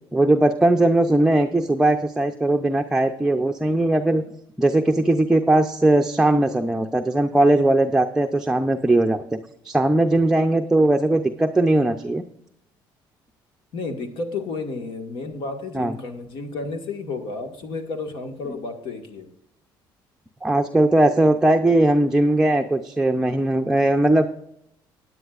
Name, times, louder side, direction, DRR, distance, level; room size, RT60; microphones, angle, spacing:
voice 1, 0.1-4.2 4.6-9.4 9.6-12.2 15.7-15.9 20.4-24.3, right 1 dB, 5° right, 3 dB, 0.6 m, -19 dB
voice 2, 13.7-19.3, left 3 dB, 70° left, 5 dB, 1.8 m, -32 dB
17.5 x 9.8 x 2.5 m, 0.74 s
cardioid pair, 115°, 9 cm